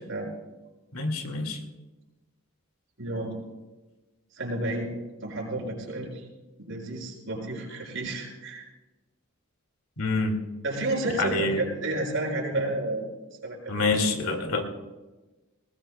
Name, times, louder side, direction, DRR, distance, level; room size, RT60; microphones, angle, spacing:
voice 1, 0.9-1.6 10.0-10.4 11.2-11.6 13.7-14.6, left 3 dB, 85° left, 4 dB, 2.2 m, -26 dB
voice 2, 3.0-3.4 4.3-4.9 5.2-6.3 6.6-8.6 10.6-13.1 13.4-13.7, right 2 dB, 60° right, -3 dB, 5.5 m, -31 dB
20.0 x 19.5 x 2.3 m, 1.2 s
head